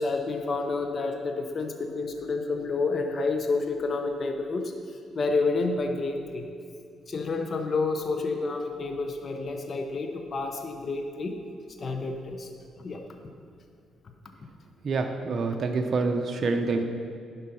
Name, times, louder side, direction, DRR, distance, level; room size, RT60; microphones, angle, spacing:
voice 1, 0.0-4.7 5.1-6.4 7.1-11.3 11.8-12.5 12.8-13.0, left 3 dB, 45° left, 4 dB, 0.8 m, -29 dB
voice 2, 14.8-16.8, right 3 dB, 45° right, 4 dB, 0.7 m, -27 dB
10.5 x 5.3 x 5.7 m, 2.4 s
cardioid pair, 90°, 0 cm